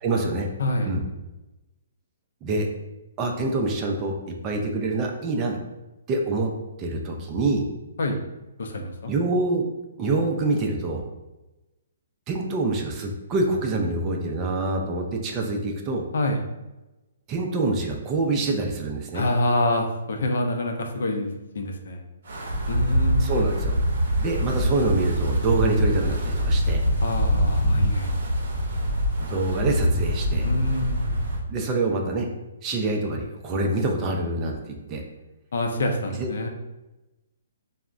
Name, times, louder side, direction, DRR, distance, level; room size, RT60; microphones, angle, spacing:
voice 1, 0.0-0.5 0.8-1.0 2.4-2.7 3.2-4.2 4.4-5.6 6.1-6.5 6.8-7.6 9.1-9.6 10.0-11.0 12.3-16.0 17.3-19.3 23.2-23.8 24.2-26.8 29.2-30.5 31.5-32.3 32.6-35.0 36.2-36.3, right 2 dB, 25° right, 1 dB, 0.4 m, -26 dB
voice 2, 0.6-0.9 8.0-8.2 8.6-9.1 16.1-16.4 19.1-21.3 21.5-22.0 22.7-23.4 27.0-28.1 30.4-31.2 35.5-36.5, left 1 dB, 70° left, 3 dB, 0.4 m, -26 dB
Wind, 22.3-31.4, equal, 65° right, 0.6 m, -24 dB
3.3 x 2.0 x 2.4 m, 1.0 s
hypercardioid pair, 155°, 0 cm